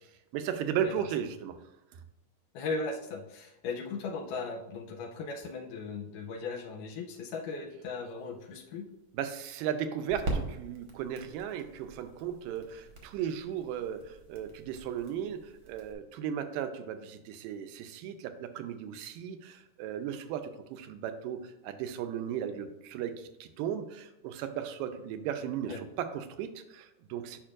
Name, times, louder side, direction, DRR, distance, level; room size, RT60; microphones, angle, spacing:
voice 1, 0.3-1.6 1.9-2.0 9.1-27.4, right 9 dB, 85° right, 9 dB, 2.2 m, -36 dB
voice 2, 2.5-8.9 25.7-25.8, left 4 dB, 80° left, 2 dB, 2.1 m, -37 dB
sound 1, 8.0-15.9, right 2 dB, 60° right, 1.4 m, -42 dB
8.7 x 5.3 x 2.5 m, 0.90 s
omnidirectional pair, 3.9 m